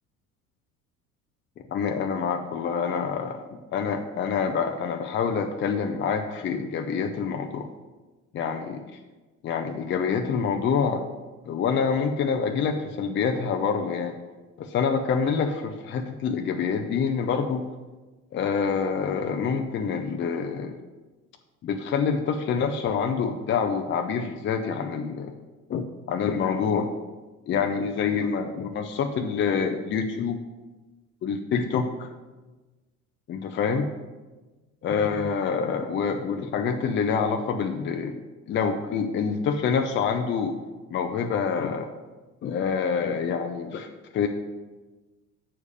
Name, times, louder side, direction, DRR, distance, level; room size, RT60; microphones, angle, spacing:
voice 1, 1.7-7.7 8.3-9.0 9.4-11.0 11.4-14.2 14.6-17.6 18.3-20.8 21.6-25.3 25.7-26.9 27.5-30.4 31.2-32.1 33.3-33.8 34.8-38.2 38.5-40.6 40.9-41.9 42.4-44.3, left 6 dB, 30° left, 5 dB, 0.6 m, -26 dB
7.1 x 4.7 x 6.8 m, 1.2 s
figure-of-eight pair, 65°, 41 cm